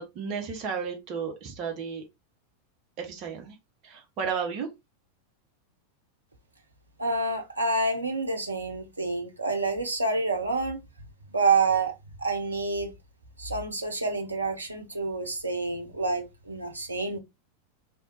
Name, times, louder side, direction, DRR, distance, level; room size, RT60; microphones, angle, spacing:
voice 1, 0.0-2.0 3.0-3.6 3.8-4.7, right 6 dB, 35° right, 0.9 m, -33 dB
voice 2, 7.0-10.8 11.3-11.9 12.2-12.9 13.4-17.2, right 3 dB, 80° right, 0.7 m, -28 dB
3.5 x 2.9 x 2.9 m
figure-of-eight pair, 90°, 0 cm